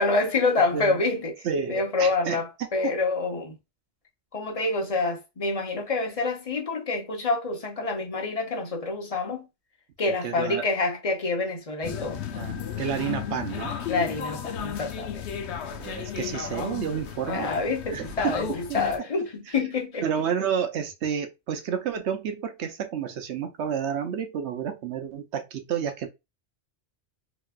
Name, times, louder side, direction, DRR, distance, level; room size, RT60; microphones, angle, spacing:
voice 1, 0.0-1.3 1.7-3.5 4.3-9.5 10.0-12.2 13.9-15.2 17.3-20.0, left 3 dB, 35° left, 0.8 m, -27 dB
voice 2, 1.4-2.9 10.2-10.7 12.3-13.7 15.8-17.5 17.9-19.1 19.5-19.6 20.0-26.1, right 7 dB, 75° right, 0.9 m, -30 dB
sound 1, 11.8-19.0, left 8 dB, 75° left, 0.9 m, -34 dB
3.3 x 2.9 x 2.3 m
omnidirectional pair, 1.2 m